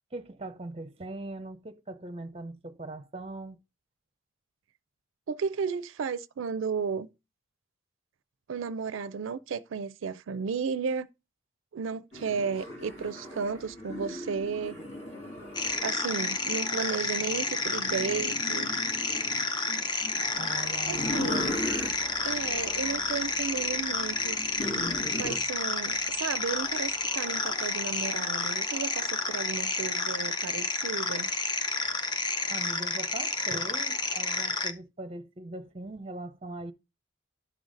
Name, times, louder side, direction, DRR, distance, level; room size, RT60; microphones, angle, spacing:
voice 1, 0.1-3.6 20.4-21.5 32.5-36.7, right 2 dB, 30° right, 0.6 m, -40 dB
voice 2, 5.3-7.1 8.5-11.1 11.7-14.8 15.8-18.7 20.9-21.7 22.2-24.4 25.1-31.3, right 5 dB, 80° right, 0.4 m, -34 dB
sound 1, 12.1-25.4, left 1 dB, 65° left, 2.8 m, -39 dB
sound 2, 15.6-34.7, left 3 dB, 20° left, 0.5 m, -30 dB
sound 3, 19.7-28.6, equal, ahead, 1.7 m, -55 dB
11.0 x 4.0 x 5.0 m
head